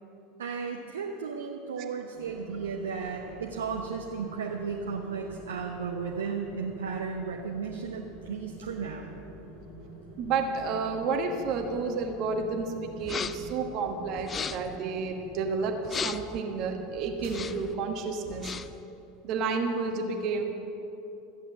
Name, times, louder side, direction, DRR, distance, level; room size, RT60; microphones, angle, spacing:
voice 1, 0.4-9.1, right 5 dB, 70° right, 1 dB, 0.8 m, -34 dB
sound 1, 2.1-17.8, right 1 dB, 80° left, 3.4 m, -47 dB
voice 2, 10.2-18.5 19.2-20.4, right 4 dB, 45° right, 4 dB, 1.3 m, -31 dB
sound 2, 13.0-13.5 14.2-14.8 15.8-16.4 17.2-17.7 18.2-18.8, left 6 dB, 25° left, 0.5 m, -36 dB
14.5 x 8.6 x 7.3 m, 3.0 s
figure-of-eight pair, 80°, 0 cm